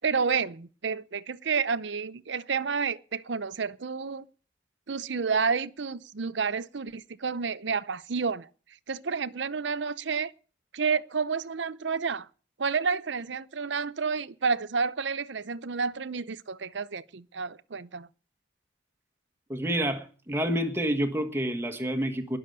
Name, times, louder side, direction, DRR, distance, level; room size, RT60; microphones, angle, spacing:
voice 1, 0.0-4.3 4.9-8.5 8.9-10.3 10.7-12.3 12.6-18.1, right 5 dB, 70° right, 0.7 m, -30 dB
voice 2, 19.5-22.4, right 1 dB, 10° right, 1.6 m, -28 dB
21.0 x 7.1 x 6.7 m
head